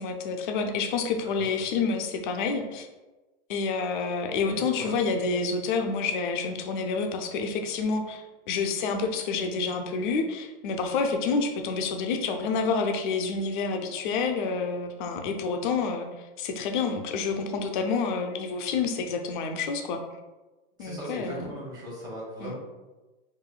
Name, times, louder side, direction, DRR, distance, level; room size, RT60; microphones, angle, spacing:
voice 1, 0.0-2.9 3.5-16.1 16.4-20.0 20.8-21.5 22.4-22.5, left 4 dB, 55° left, 4 dB, 0.5 m, -28 dB
voice 2, 1.2-1.6 4.4-5.0 20.8-22.5, right 1 dB, 15° right, -5 dB, 1.0 m, -38 dB
4.9 x 2.6 x 2.3 m, 1.2 s
supercardioid pair, 150°, 31 cm